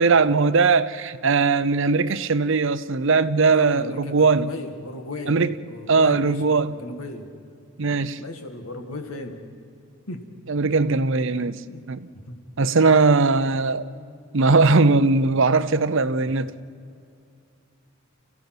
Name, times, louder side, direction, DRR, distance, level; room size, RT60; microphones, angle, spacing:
voice 1, 0.0-4.5 5.3-5.5 5.9-6.8 7.8-8.2 10.5-11.6 11.9-12.1 12.6-13.9 14.3-16.5, right 4 dB, 60° right, 0.7 m, -19 dB
voice 2, 3.5-5.4 5.7-7.3 8.2-9.4 10.1-10.3 10.6-10.7 11.7-11.8 12.1-12.4 16.2-16.3, left 2 dB, 75° left, 2.1 m, -36 dB
29.0 x 16.0 x 6.1 m
head